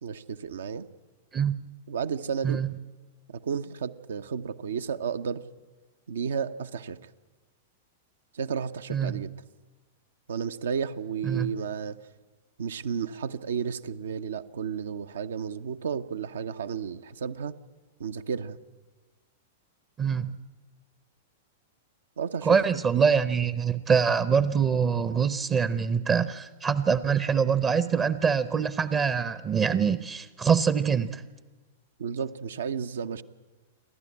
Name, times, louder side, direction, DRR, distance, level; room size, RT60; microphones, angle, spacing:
voice 1, 0.0-0.9 1.9-2.6 3.3-5.4 6.1-7.0 8.3-9.3 10.3-12.0 12.6-17.5 18.0-18.6 22.2-22.5 32.0-33.2, right 6 dB, 65° right, 11 dB, 0.8 m, -32 dB
voice 2, 20.0-20.3 22.4-31.2, right 6 dB, 25° right, 15 dB, 0.8 m, -24 dB
28.5 x 12.5 x 9.7 m, 1.3 s
figure-of-eight pair, 100°, 0 cm